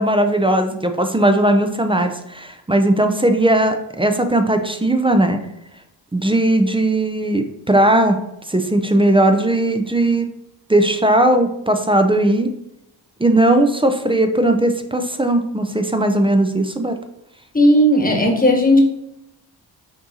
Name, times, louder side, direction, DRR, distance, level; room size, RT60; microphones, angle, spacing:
voice 1, 0.0-5.4 6.1-8.2 8.5-10.3 10.7-12.5 13.2-17.0, right 1 dB, 10° right, 7 dB, 0.4 m, -17 dB
voice 2, 17.5-18.8, equal, 20° left, 2 dB, 1.2 m, -14 dB
5.9 x 2.7 x 2.8 m, 0.84 s
cardioid pair, 50°, 45 cm